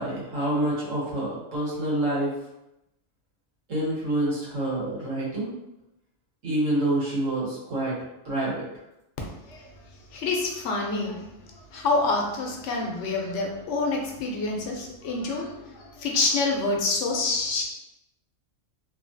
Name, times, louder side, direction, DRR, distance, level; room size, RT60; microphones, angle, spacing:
voice 1, 0.0-2.3 3.7-5.5 6.4-8.0 8.2-8.7, right 1 dB, 80° right, -7 dB, 1.5 m, -27 dB
voice 2, 10.1-17.6, left 3 dB, 75° left, 0 dB, 0.9 m, -27 dB
3.0 x 2.3 x 2.6 m, 0.89 s
omnidirectional pair, 1.3 m